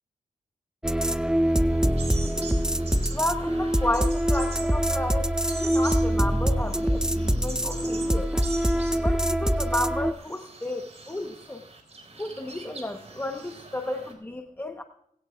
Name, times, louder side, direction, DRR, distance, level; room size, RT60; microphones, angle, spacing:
sound 1, 0.8-10.1, equal, 5° right, 0.5 m, -24 dB
sound 2, 1.2-14.1, right 3 dB, 45° right, 3.7 m, -43 dB
voice 1, 3.1-5.3 5.6-8.3 9.0-11.6 12.2-14.8, left 1 dB, 15° left, 4 dB, 1.1 m, -32 dB
sound 3, 6.0-8.5, left 5 dB, 85° left, 1.2 m, -47 dB
19.5 x 17.0 x 2.4 m, 0.73 s
wide cardioid pair, 90°, 15 cm